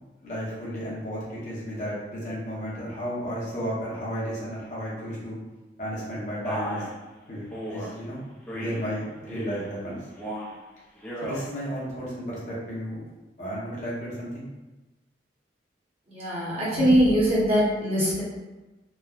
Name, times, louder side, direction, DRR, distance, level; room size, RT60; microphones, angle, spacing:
voice 1, 0.2-5.4 5.8-6.9 7.3-8.2 8.5-10.0 11.2-13.0 13.4-14.4, equal, 40° left, -7 dB, 0.9 m, -33 dB
Male speech man speaking, 6.4-6.9 7.5-7.9 8.5-8.9 9.3-9.7 10.1-10.6 11.0-11.4, equal, 5° left, 0.4 m, -34 dB
voice 2, 16.1-18.2, equal, 30° right, -8 dB, 1.0 m, -22 dB
3.1 x 2.1 x 2.4 m, 1.1 s
head